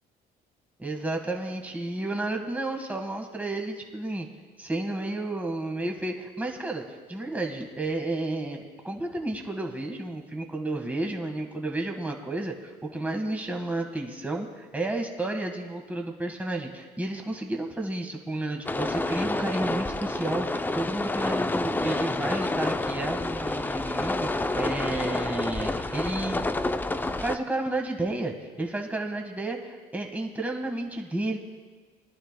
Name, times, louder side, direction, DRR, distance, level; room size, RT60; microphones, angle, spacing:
voice 1, 0.8-4.3 4.6-26.4 27.2-31.4, right 2 dB, 10° right, 2 dB, 1.5 m, -31 dB
sound 1, 18.6-27.4, left 2 dB, 10° left, 0.4 m, -29 dB
23.0 x 11.0 x 2.2 m, 1.4 s
cardioid pair, 110°, 17 cm